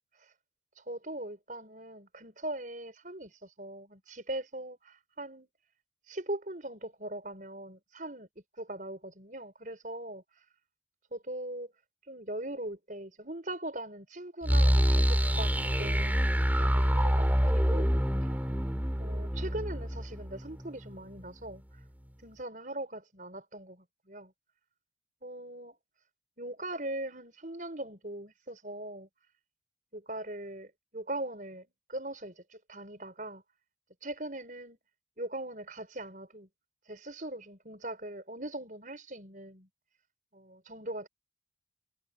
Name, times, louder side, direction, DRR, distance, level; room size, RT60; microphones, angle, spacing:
voice 1, 0.8-5.5 6.1-8.3 8.6-10.4 11.1-11.7 12.0-17.9 18.2-18.3 19.0-21.6 22.2-24.3 25.2-25.8 26.4-29.1 29.9-33.4 34.0-34.8 35.2-36.5 36.9-39.7 40.3-41.1, right 1 dB, 45° right, 5.9 m, -40 dB
sound 1, 14.4-21.2, equal, 10° right, 2.8 m, -27 dB
head